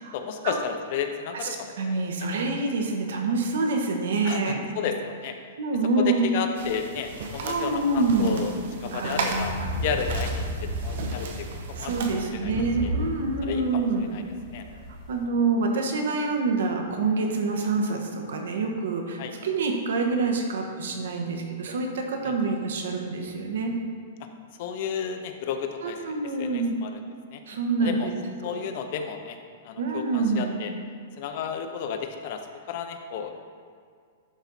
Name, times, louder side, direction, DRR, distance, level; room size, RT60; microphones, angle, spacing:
voice 1, 0.1-2.0 4.2-5.3 6.0-8.5 8.8-9.5 9.8-11.9 12.3-12.5 13.4-14.2 14.5-14.6 19.2-19.3 22.2-22.3 24.6-26.9 27.3-27.4 27.8-28.1 28.4-29.4 29.6-30.7 31.2-32.4 32.7-33.3, left 7 dB, 40° left, 6 dB, 0.6 m, -32 dB
voice 2, 1.8-4.6 5.6-6.3 7.4-8.4 8.9-9.6 11.8-14.2 15.1-23.7 25.8-26.7 27.5-28.1 29.8-30.5, right 3 dB, 75° right, 3 dB, 1.2 m, -26 dB
sound 1, 6.5-12.3, right 4 dB, 55° right, 0.9 m, -36 dB
sound 2, 9.3-15.2, equal, 20° left, 1.2 m, -33 dB
11.0 x 4.2 x 4.1 m, 2.1 s
hypercardioid pair, 170°, 0 cm